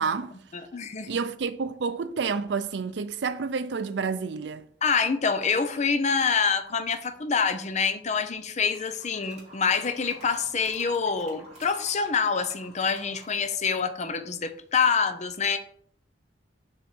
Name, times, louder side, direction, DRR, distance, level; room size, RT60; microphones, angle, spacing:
voice 1, 0.0-0.3 1.1-4.7, right 5 dB, 75° right, 0.5 m, -29 dB
voice 2, 0.5-1.1 4.8-15.6, left 5 dB, 40° left, 0.6 m, -26 dB
sound 1, 5.4-5.8 7.0-7.8 8.5-13.9, right 1 dB, 40° right, 3.2 m, -51 dB
6.5 x 3.5 x 6.1 m
head